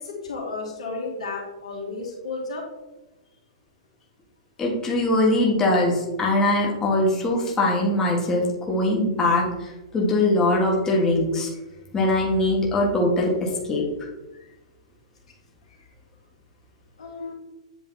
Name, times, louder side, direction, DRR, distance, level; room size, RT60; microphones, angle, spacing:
voice 1, 0.0-2.7 14.3-14.5 15.8-15.9 17.0-17.3, left 3 dB, 85° left, -1 dB, 2.1 m, -33 dB
voice 2, 4.6-11.5 11.9-13.8, left 1 dB, 15° left, -3 dB, 1.5 m, -22 dB
8.3 x 3.4 x 3.9 m, 1.0 s
hypercardioid pair, 135°, 3 cm